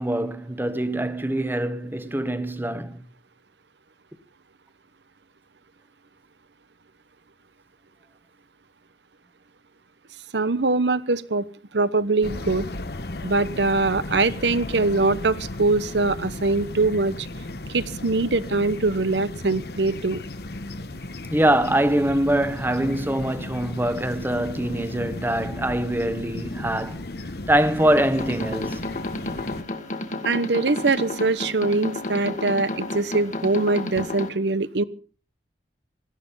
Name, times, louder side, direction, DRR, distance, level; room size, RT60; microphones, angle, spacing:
voice 1, 0.0-3.0 21.3-27.0 27.5-28.8, right 1 dB, 10° right, 1.1 m, -23 dB
voice 2, 10.3-11.4 11.7-12.7 13.2-17.3 17.7-20.2 30.2-34.8, right 3 dB, 80° right, 1.0 m, -23 dB
sound 1, 12.2-29.6, left 2 dB, 60° left, 1.1 m, -35 dB
sound 2, 27.8-34.3, left 2 dB, 45° left, 1.8 m, -32 dB
17.5 x 13.0 x 5.5 m
head